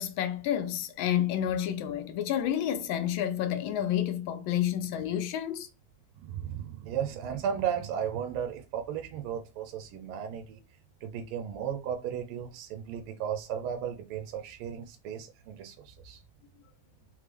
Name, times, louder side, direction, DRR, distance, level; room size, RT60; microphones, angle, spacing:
voice 1, 0.0-5.7, left 10 dB, 75° left, 1.3 m, -30 dB
voice 2, 6.2-10.6 11.0-16.2, right 8 dB, 85° right, 1.5 m, -35 dB
3.6 x 3.5 x 3.3 m
omnidirectional pair, 2.3 m